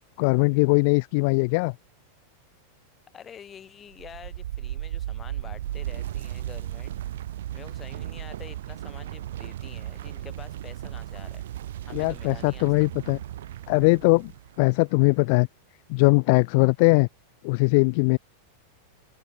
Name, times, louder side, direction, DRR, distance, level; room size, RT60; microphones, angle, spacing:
voice 1, 0.2-1.7 11.9-13.2 13.7-14.3 14.6-15.5 15.9-17.1 17.4-18.2, left 30 dB, 45° left, 0.6 m, -20 dB
voice 2, 3.1-7.0 7.5-11.5 11.8-12.7, left 8 dB, 25° left, 5.3 m, -47 dB
sound 1, 3.9-14.7, right 12 dB, 60° right, 2.9 m, -36 dB
open air
figure-of-eight pair, 90°, 0 cm